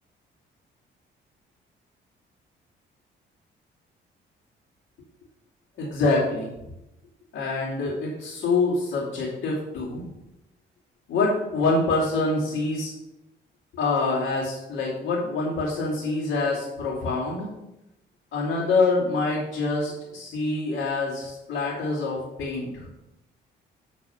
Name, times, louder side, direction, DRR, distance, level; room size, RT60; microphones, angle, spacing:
voice 1, 5.8-6.5 7.3-10.0 11.1-12.9 13.7-17.5 18.3-22.8, left 3 dB, 80° left, -9 dB, 2.8 m, -25 dB
8.6 x 4.0 x 5.6 m, 0.91 s
cardioid pair, 90°, 20 cm